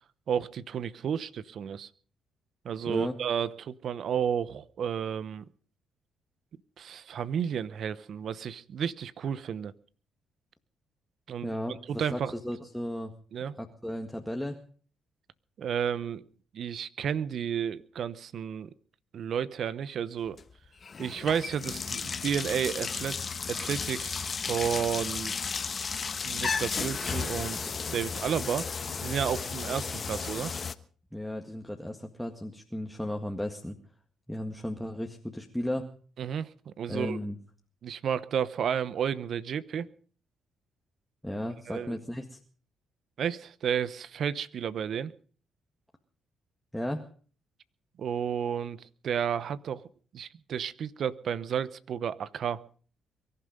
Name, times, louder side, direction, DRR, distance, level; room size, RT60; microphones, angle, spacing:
voice 1, 0.3-1.9 2.6-5.4 6.8-9.7 11.3-11.5 11.9-12.3 13.3-13.6 15.6-16.3 16.5-18.7 19.1-20.4 21.0-23.2 23.5-25.3 26.2-28.7 29.0-30.5 36.2-37.2 37.8-39.9 41.7-42.0 43.2-45.1 48.0-49.8 50.1-52.6, right 8 dB, 65° right, 0.8 m, -32 dB
voice 2, 2.9-3.2 11.4-13.1 13.6-14.6 31.1-33.8 34.3-35.9 36.9-37.4 41.2-42.4 46.7-47.0, left 1 dB, ahead, 1.8 m, -35 dB
sound 1, 20.2-20.4 20.8-30.7, left 5 dB, 45° left, 1.1 m, -34 dB
23.0 x 11.5 x 5.2 m
supercardioid pair, 70°, 0 cm